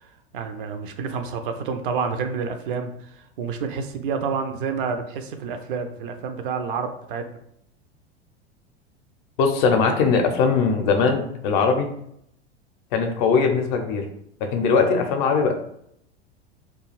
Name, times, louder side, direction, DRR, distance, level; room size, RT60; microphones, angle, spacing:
voice 1, 0.3-3.1 3.4-7.2, right 5 dB, 55° right, 7 dB, 0.5 m, -28 dB
voice 2, 9.4-11.9 12.9-14.1 14.4-15.5, left 5 dB, 50° left, 4 dB, 0.5 m, -20 dB
2.3 x 2.3 x 3.0 m, 0.73 s
figure-of-eight pair, 85°, 32 cm